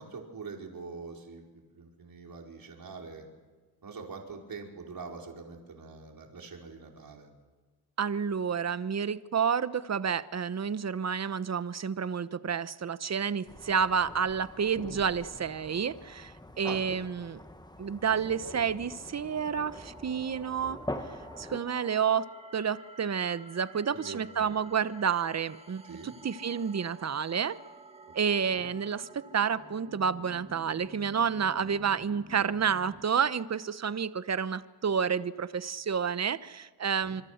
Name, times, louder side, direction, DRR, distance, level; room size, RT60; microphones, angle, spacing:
voice 1, 0.0-3.3 3.8-7.3 16.6-16.8 23.9-24.6 25.8-26.1 28.4-28.7 37.0-37.2, right 4 dB, 55° right, 1 dB, 5.0 m, -44 dB
voice 2, 8.0-17.4 17.8-20.8 21.4-22.3 22.5-27.6 28.1-37.2, right 7 dB, 40° right, 14 dB, 1.1 m, -30 dB
sound 1, 13.5-21.6, left 1 dB, 10° left, 1.8 m, -44 dB
sound 2, 19.3-33.1, right 2 dB, 15° right, 2.1 m, -51 dB
26.0 x 24.5 x 6.7 m, 1.4 s
cardioid pair, 65°, 42 cm